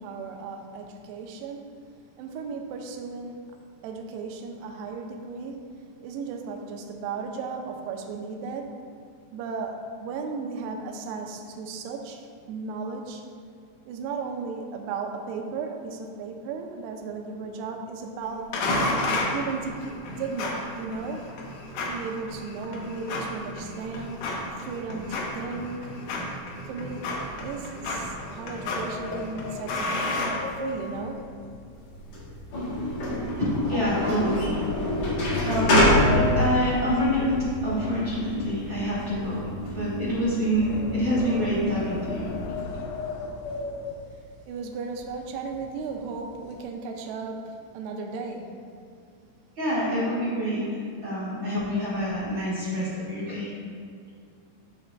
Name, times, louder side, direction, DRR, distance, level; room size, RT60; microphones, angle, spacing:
voice 1, 0.0-1.8 2.2-3.5 3.8-8.8 9.3-13.2 13.9-18.6 19.3-21.3 21.9-24.3 24.5-26.0 26.7-31.2 44.5-48.6, right 4 dB, 80° right, 2 dB, 2.5 m, -35 dB
sound 1, 18.5-31.0, left 2 dB, 70° left, 2.4 m, -32 dB
sound 2, 27.1-32.4 32.7-33.1 33.6-33.7 34.5-37.9 38.1-44.4 45.0-45.1 45.4-45.6 46.0-46.6, left 3 dB, 90° left, 3.0 m, -37 dB
sound 3, 31.9-42.6, left 1 dB, 55° left, 2.4 m, -27 dB
voice 2, 33.4-34.7 35.0-35.1 35.4-39.5 39.7-42.3 49.6-50.6 51.0-53.5, equal, 65° right, -10 dB, 1.2 m, -26 dB
13.0 x 5.3 x 2.2 m, 2.4 s
omnidirectional pair, 5.1 m